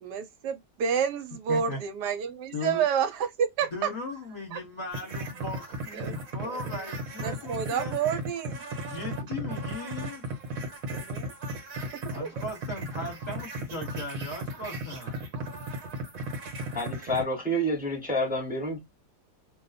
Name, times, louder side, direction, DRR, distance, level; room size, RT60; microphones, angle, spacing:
voice 1, 0.0-3.9 4.5-4.6 5.9-6.6 7.2-8.6 10.9-11.3 11.9-12.3, right 7 dB, 75° right, 1.2 m, -30 dB
voice 2, 1.5-1.8 2.5-2.8 3.7-7.9 8.9-10.5 12.1-15.2, left 2 dB, 25° left, 1.3 m, -38 dB
sound 1, 4.9-17.2, right 1 dB, 60° right, 1.3 m, -36 dB
voice 3, 16.7-18.8, equal, 5° right, 1.0 m, -28 dB
2.7 x 2.4 x 4.0 m
omnidirectional pair, 1.8 m